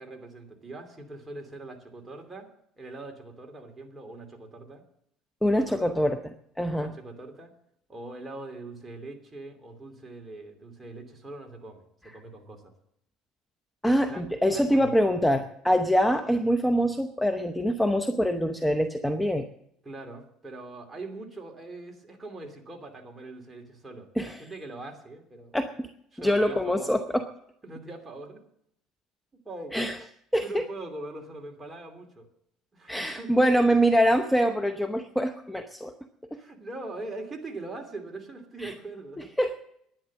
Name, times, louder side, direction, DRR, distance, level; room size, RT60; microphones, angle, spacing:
voice 1, 0.0-2.5 2.8-4.8 5.5-5.9 6.8-7.5 7.9-12.7 14.1-14.9 19.8-25.6 26.1-27.0 27.6-28.4 29.4-29.7 30.4-32.3 32.7-33.3 36.3-39.3, right 2 dB, 20° right, 3 dB, 2.8 m, -42 dB
voice 2, 5.4-6.2 6.6-6.9 13.8-19.5 24.2-24.4 25.5-25.9 26.2-27.2 29.7-30.0 30.3-30.6 32.9-35.9 38.6-38.7 39.4-39.6, equal, 5° left, 7 dB, 0.8 m, -24 dB
11.0 x 10.0 x 7.6 m, 0.73 s
supercardioid pair, 110°, 0 cm